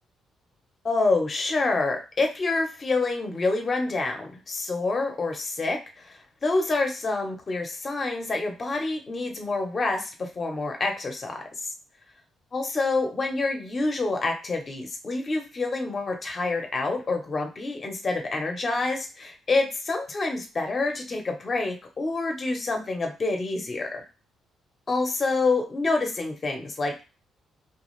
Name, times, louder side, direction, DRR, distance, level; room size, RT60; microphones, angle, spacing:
voice 1, 0.8-11.7 12.5-24.0 24.9-27.0, left 3 dB, 35° left, 3 dB, 0.8 m, -27 dB
2.4 x 2.3 x 3.1 m, 0.32 s
cardioid pair, 90°, 0 cm